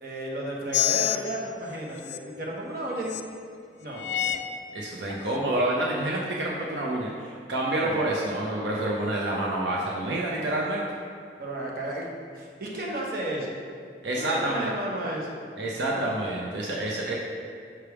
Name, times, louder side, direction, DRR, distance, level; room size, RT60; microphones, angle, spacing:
voice 1, 0.0-3.2 3.8-4.4 7.7-8.1 11.4-12.1 12.3-13.5 14.1-15.4 15.8-16.2, right 1 dB, 55° right, -3 dB, 0.9 m, -33 dB
sound 1, 0.7-1.2 2.0-2.2 3.1-3.2 4.0-4.4 5.1-5.2, left 14 dB, 80° left, 0.3 m, -26 dB
voice 2, 4.7-10.9 14.0-14.7 15.6-17.1, right 1 dB, 80° right, -3 dB, 0.6 m, -28 dB
5.8 x 3.4 x 4.7 m, 2.2 s
head